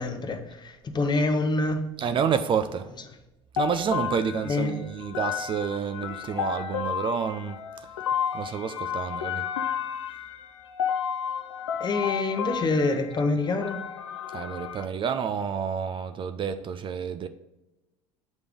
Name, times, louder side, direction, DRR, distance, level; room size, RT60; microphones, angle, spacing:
voice 1, 0.0-1.8 4.4-4.8 11.8-13.8, left 3 dB, 30° left, 0.9 m, -26 dB
voice 2, 2.0-2.9 3.5-7.6 8.3-9.5 14.3-17.3, right 7 dB, 35° right, 0.4 m, -29 dB
sound 1, 3.6-14.8, left 8 dB, 85° left, 0.5 m, -32 dB
8.2 x 3.4 x 3.6 m
hypercardioid pair, 70°, 15 cm